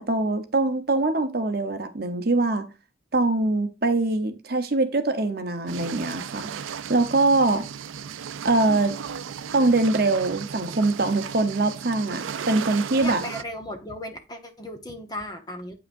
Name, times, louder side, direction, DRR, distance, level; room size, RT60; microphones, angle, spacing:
voice 1, 0.0-2.7 3.1-6.6 6.9-7.6 8.4-8.9 9.5-13.2, right 2 dB, 50° right, 0.9 m, -23 dB
sound 1, 5.7-13.4, right 7 dB, 85° right, 0.4 m, -35 dB
voice 2, 13.0-15.7, left 1 dB, 20° left, 1.0 m, -35 dB
8.5 x 5.8 x 2.6 m
head